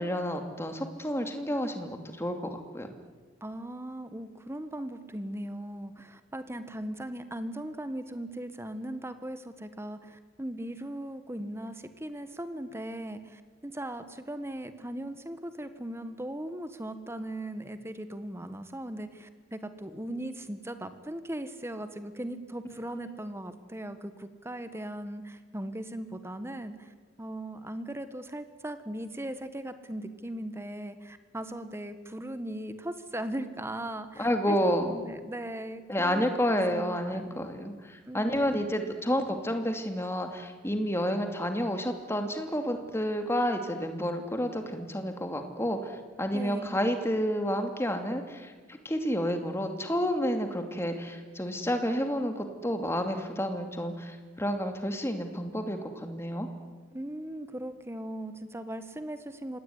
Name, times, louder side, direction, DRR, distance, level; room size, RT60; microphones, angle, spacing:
voice 1, 0.0-2.9 34.2-34.9 35.9-56.5, equal, 15° left, 6 dB, 2.6 m, -30 dB
voice 2, 3.4-37.4 38.1-38.6 46.3-46.8 56.9-59.6, right 1 dB, 15° right, 10 dB, 1.4 m, -38 dB
26.5 x 19.5 x 9.7 m, 1.4 s
head